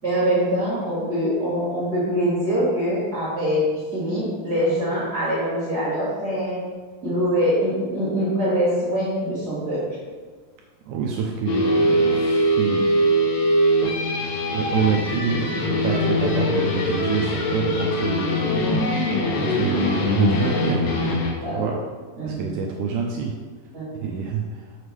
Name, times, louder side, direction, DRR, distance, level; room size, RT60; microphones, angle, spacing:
voice 1, 0.0-3.6 3.9-6.6 7.0-9.8 21.4-21.7 22.2-22.5 23.7-23.8, equal, 40° right, -8 dB, 1.5 m, -23 dB
voice 2, 10.9-12.9 14.5-20.8 21.5-21.8 22.2-23.3 24.0-24.6, right 6 dB, 85° right, 0 dB, 1.7 m, -27 dB
sound 1, 11.5-21.3, equal, 65° left, 1.8 m, -22 dB
6.7 x 6.5 x 3.2 m, 1.5 s
omnidirectional pair, 4.0 m